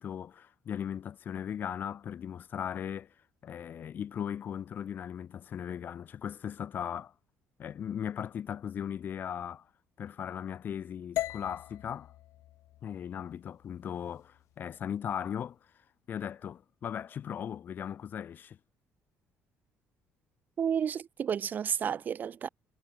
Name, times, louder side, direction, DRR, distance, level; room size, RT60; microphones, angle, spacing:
voice 1, 0.0-3.1 3.4-7.1 7.6-9.7 10.0-12.1 12.8-15.7 16.1-18.6, left 9 dB, 35° left, 0.8 m, -38 dB
sound 1, 11.2-15.3, left 15 dB, 70° left, 3.6 m, -41 dB
voice 2, 20.6-22.5, right 8 dB, 35° right, 1.7 m, -31 dB
cardioid pair, 170°, 5 cm